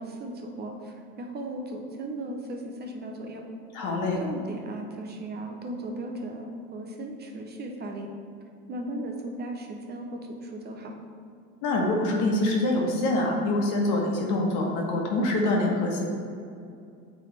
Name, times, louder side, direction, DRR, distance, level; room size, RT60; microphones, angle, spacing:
voice 1, 0.0-3.5 4.2-8.1 8.7-11.0, right 1 dB, 30° right, 2 dB, 0.7 m, -36 dB
voice 2, 3.7-4.2 11.6-16.0, left 2 dB, 70° left, 0 dB, 1.3 m, -25 dB
8.2 x 3.5 x 3.3 m, 2.4 s
cardioid pair, 120°, 32 cm